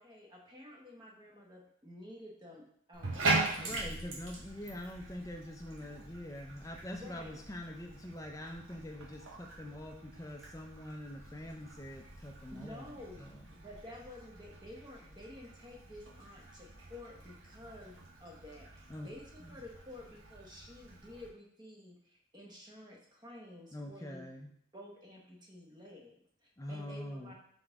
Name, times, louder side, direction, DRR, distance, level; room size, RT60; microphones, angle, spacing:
voice 1, 0.0-4.0 6.9-7.4 12.5-24.3 24.7-27.3, left 1 dB, 20° right, -1 dB, 0.9 m, -51 dB
Bathtub (filling or washing), 2.9-21.3, right 3 dB, 85° right, 1.0 m, -41 dB
voice 2, 3.6-13.4 18.9-19.1 19.4-19.6 23.7-24.5 26.6-27.3, left 1 dB, 15° left, 2 dB, 0.5 m, -45 dB
3.9 x 3.8 x 3.5 m, 0.67 s
head